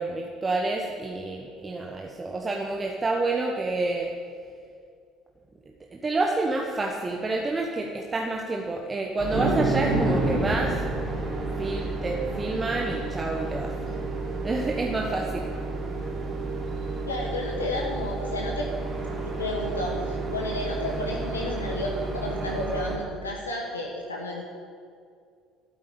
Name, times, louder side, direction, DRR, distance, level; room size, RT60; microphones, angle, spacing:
voice 1, 0.0-4.1 5.9-10.8 11.6-13.7 14.4-15.5, right 2 dB, 25° right, 0 dB, 1.4 m, -28 dB
sound 1, 9.2-23.0, right 2 dB, 45° right, 3.8 m, -30 dB
voice 2, 17.0-18.7 19.2-24.4, left 1 dB, 85° left, -1 dB, 1.4 m, -32 dB
12.5 x 9.2 x 8.5 m, 2.2 s
figure-of-eight pair, 55°, 0 cm